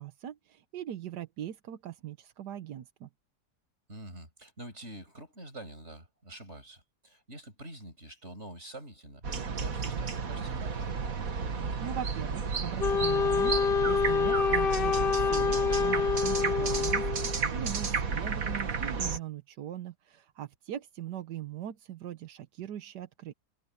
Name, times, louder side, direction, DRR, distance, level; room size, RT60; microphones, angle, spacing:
voice 1, 0.0-3.1 11.8-13.6 13.8-23.3, right 10 dB, 85° right, 1.5 m, -40 dB
voice 2, 3.9-9.2 9.5-10.9, right 1 dB, 40° right, 7.4 m, -46 dB
sound 1, 9.2-19.2, right 5 dB, 60° right, 2.1 m, -32 dB
Wind instrument woodwind instrument, 12.8-17.4, left 6 dB, 55° left, 0.6 m, -27 dB
omnidirectional pair, 1.7 m